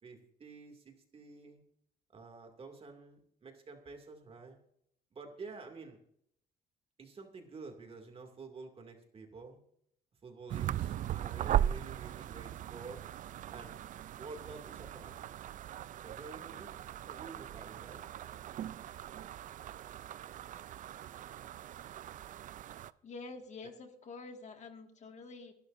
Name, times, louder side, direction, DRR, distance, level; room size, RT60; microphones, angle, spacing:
voice 1, 0.0-1.6 2.1-4.6 5.1-6.0 7.0-9.6 10.2-13.0 13.5-13.8 14.2-15.2 16.0-16.7 17.0-18.1, right 4 dB, 35° right, 4 dB, 2.5 m, -49 dB
sound 1, 10.5-22.9, right 11 dB, 50° right, 0.4 m, -39 dB
voice 2, 23.0-25.5, left 3 dB, 45° left, 5 dB, 2.0 m, -47 dB
23.5 x 11.5 x 2.7 m, 0.70 s
cardioid pair, 110°, 17 cm